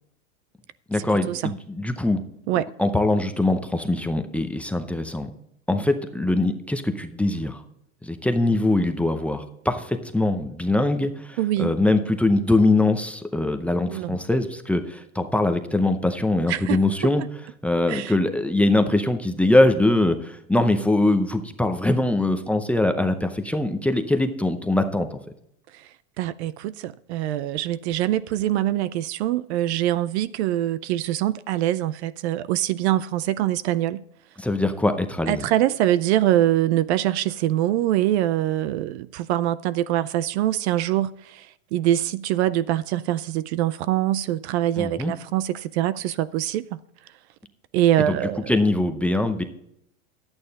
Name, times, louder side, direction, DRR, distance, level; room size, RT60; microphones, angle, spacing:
voice 1, 0.9-2.2 2.8-5.3 5.7-7.6 8.0-17.2 17.6-25.2 34.4-35.5 44.8-45.1 48.0-48.2 48.5-49.4, left 2 dB, 5° left, 0.6 m, -22 dB
voice 2, 11.4-11.7 13.7-14.2 16.5-16.8 17.2-17.3 17.9-18.1 25.7-25.9 26.2-34.0 35.3-46.8 47.7-48.5, right 13 dB, 55° right, 0.5 m, -24 dB
11.0 x 8.9 x 4.0 m
hypercardioid pair, 120°, 41 cm